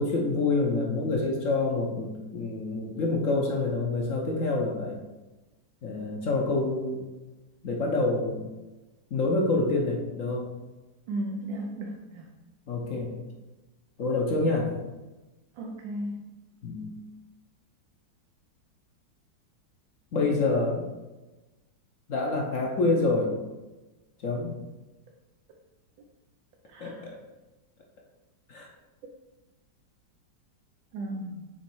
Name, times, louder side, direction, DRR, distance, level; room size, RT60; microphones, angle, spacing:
voice 1, 0.0-5.0 5.8-7.1 7.6-8.5 9.1-10.5 12.7-13.1 14.0-14.7 16.6-17.0 20.1-20.9 22.1-23.3 24.2-24.5 26.8-27.2 28.5-28.7, left 3 dB, 55° left, 0 dB, 1.0 m, -27 dB
voice 2, 11.1-12.3 15.6-16.2 26.7-27.1 30.9-31.5, right 1 dB, 85° right, 0 dB, 1.4 m, -35 dB
7.3 x 3.1 x 4.6 m, 1.1 s
omnidirectional pair, 2.0 m